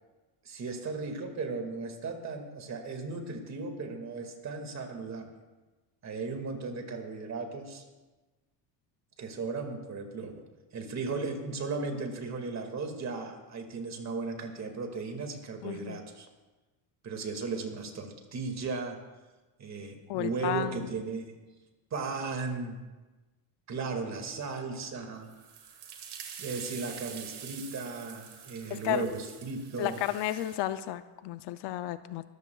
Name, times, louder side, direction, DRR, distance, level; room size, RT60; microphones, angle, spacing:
voice 1, 0.4-5.3 6.0-7.8 9.2-10.3 10.7-16.3 17.0-19.0 19.6-21.4 21.9-22.8 23.7-25.3 26.4-30.0, right 4 dB, 35° right, 4 dB, 2.0 m, -36 dB
voice 2, 15.6-16.0 20.1-20.9 28.7-29.0 29.8-32.2, left 13 dB, 60° left, 12 dB, 0.6 m, -33 dB
sound 1, 25.2-30.7, right 7 dB, 55° right, 2.1 m, -46 dB
22.0 x 14.0 x 2.3 m, 1.2 s
cardioid pair, 135°, 47 cm